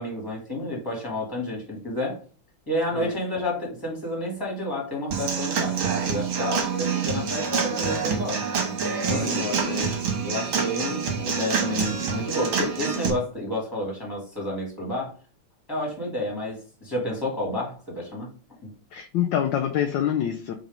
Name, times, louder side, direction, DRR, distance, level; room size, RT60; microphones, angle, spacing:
voice 1, 0.0-2.2 2.7-8.5 9.0-9.5 10.2-15.1 15.7-18.3 18.6-18.7, left 1 dB, 10° left, -3 dB, 2.6 m, -30 dB
Human voice / Acoustic guitar / Drum, 5.1-13.1, right 6 dB, 75° right, 2.2 m, -27 dB
voice 2, 9.1-10.0 18.9-20.5, left 9 dB, 70° left, 4 dB, 1.3 m, -27 dB
4.7 x 3.9 x 5.2 m, 0.38 s
omnidirectional pair, 2.3 m